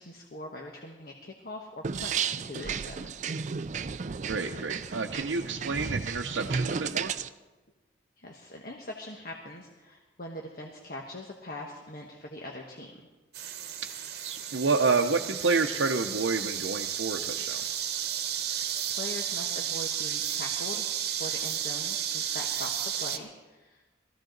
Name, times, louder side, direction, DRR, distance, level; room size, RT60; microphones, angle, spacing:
voice 1, 0.0-3.0 8.2-12.9 18.9-23.9, left 1 dB, 50° left, 0 dB, 1.3 m, -42 dB
sound 1, 1.8-7.3, right 6 dB, 40° right, 0.4 m, -33 dB
voice 2, 4.3-7.1 14.2-17.6, right 4 dB, 80° right, 2 dB, 0.7 m, -29 dB
sound 2, 13.3-23.2, right 9 dB, 55° right, 1.0 m, -33 dB
19.5 x 14.5 x 3.9 m, 1.2 s
head